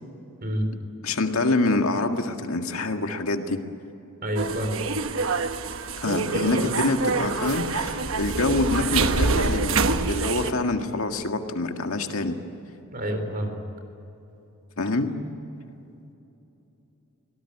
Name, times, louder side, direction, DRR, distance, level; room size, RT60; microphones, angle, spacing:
voice 1, 1.0-3.6 6.0-12.4 14.8-15.1, left 2 dB, 75° left, 5 dB, 1.9 m, -26 dB
voice 2, 4.2-4.9 6.1-6.8 12.9-13.6, right 1 dB, 45° right, 6 dB, 3.8 m, -28 dB
sound 1, 4.4-10.5, right 4 dB, 65° right, 1.1 m, -26 dB
25.0 x 18.5 x 9.9 m, 2.9 s
head